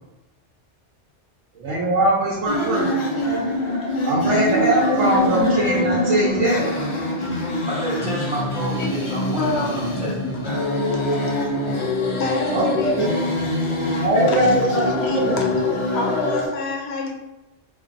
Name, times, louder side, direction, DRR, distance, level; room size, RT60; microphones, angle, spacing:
voice 1, 1.6-2.9 4.0-6.6 12.5-13.1 14.0-15.4, right 1 dB, 85° right, -5 dB, 1.0 m, -21 dB
sound 1, 2.5-16.5, left 1 dB, 45° left, 0.4 m, -24 dB
voice 2, 7.7-10.6, right 1 dB, 5° right, -7 dB, 0.8 m, -29 dB
voice 3, 9.4-9.7 12.2-13.2 14.3-17.1, left 2 dB, 65° left, 0 dB, 0.9 m, -28 dB
3.9 x 2.5 x 2.5 m, 1.0 s
omnidirectional pair, 1.2 m